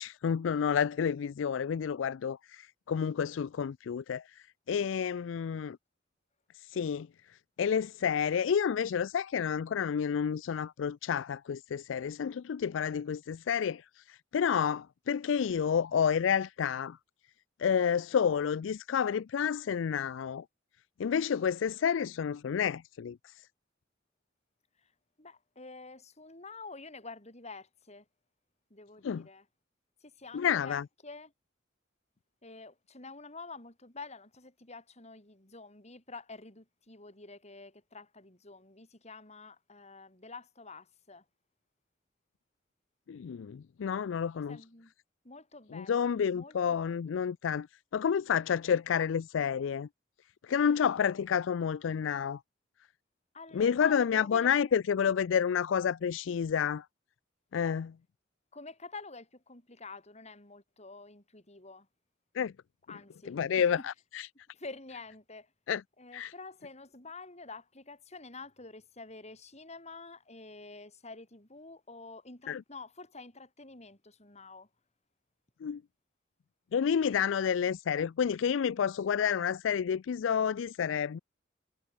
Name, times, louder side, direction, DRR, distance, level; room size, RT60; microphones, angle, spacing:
voice 1, 0.0-5.8 6.5-17.0 17.6-20.4 21.0-23.5 29.0-29.3 30.3-30.8 43.1-44.6 45.7-47.7 47.9-49.9 50.4-52.4 53.5-56.9 57.5-57.9 62.3-62.5 63.3-64.3 65.7-65.8 66.1-66.3 72.5-72.6 75.6-75.8 76.7-81.2, left 7 dB, 90° left, 0.4 m, -30 dB
voice 2, 25.2-28.0 28.7-29.4 30.0-31.3 32.4-41.2 44.5-44.9 45.2-47.2 53.3-54.7 58.5-61.9 62.9-63.7 64.5-65.5 66.0-74.7, left 3 dB, 35° left, 5.6 m, -48 dB
head